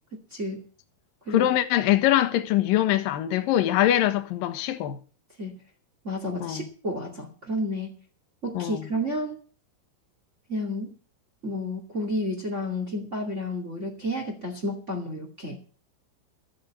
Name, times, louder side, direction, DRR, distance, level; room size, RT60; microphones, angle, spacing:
voice 1, 0.3-0.6 1.2-1.5 5.4-5.5 6.0-7.9 8.4-9.4 10.5-10.9 11.4-15.6, left 1 dB, 30° right, 1.4 m, -31 dB
voice 2, 1.3-5.0 6.4-6.7 8.5-8.9, left 13 dB, 70° left, 2.1 m, -23 dB
14.0 x 7.7 x 8.1 m
omnidirectional pair, 5.7 m